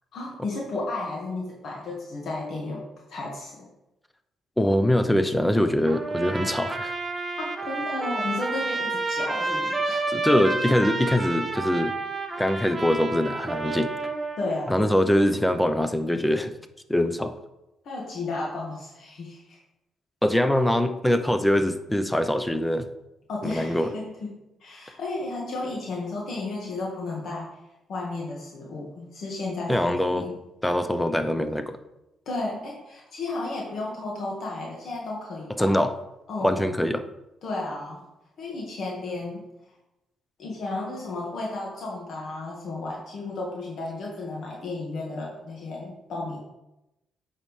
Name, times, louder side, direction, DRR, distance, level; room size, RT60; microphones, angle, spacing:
voice 1, 0.1-3.7 7.4-10.0 14.4-15.0 17.8-19.6 23.3-24.3 24.6-27.6 27.9-30.4 32.2-35.8 36.3-36.6 37.4-38.0 38.4-39.4 40.4-46.4, left 2 dB, 60° left, -2 dB, 1.6 m, -33 dB
voice 2, 4.6-6.9 10.1-12.0 12.4-13.9 14.7-16.5 16.9-17.3 20.2-22.9 23.4-23.9 29.7-30.3 30.6-31.8 35.5-35.9 36.4-37.0, left 1 dB, 5° left, 9 dB, 0.6 m, -23 dB
Trumpet, 5.9-14.5, right 3 dB, 25° right, 1.0 m, -29 dB
8.6 x 5.7 x 3.2 m, 0.94 s
cardioid pair, 90°, 0 cm